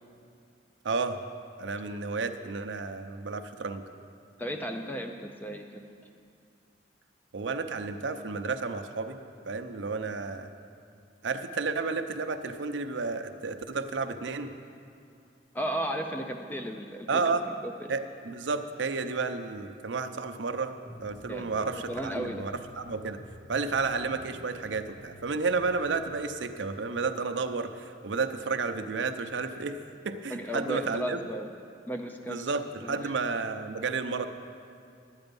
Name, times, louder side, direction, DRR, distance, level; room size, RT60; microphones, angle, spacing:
voice 1, 0.8-1.2 1.6-3.8 7.3-9.2 9.5-10.5 11.2-14.5 17.1-17.4 17.9-23.2 23.5-29.8 30.0-31.2 32.3-34.3, right 4 dB, 85° right, 8 dB, 0.6 m, -31 dB
voice 2, 4.4-5.8 15.5-17.2 17.6-17.9 21.3-21.5 21.9-22.5 30.3-31.5 31.9-32.5 32.8-33.1, right 1 dB, 10° left, 4 dB, 0.4 m, -34 dB
sound 1, 20.8-26.2, equal, 45° left, 2.1 m, -50 dB
11.5 x 9.0 x 5.3 m, 2.4 s
head